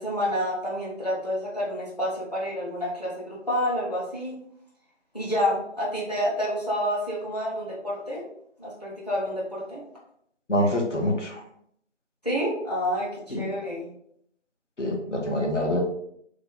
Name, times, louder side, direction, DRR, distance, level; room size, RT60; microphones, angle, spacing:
voice 1, 0.0-4.4 5.1-8.2 8.6-9.8 12.2-13.9, equal, 35° left, -4 dB, 1.1 m, -28 dB
voice 2, 10.5-11.4 13.3-13.5 14.8-15.8, left 1 dB, 80° left, 1 dB, 1.3 m, -25 dB
3.2 x 2.9 x 4.0 m, 0.70 s
figure-of-eight pair, 180°, 36 cm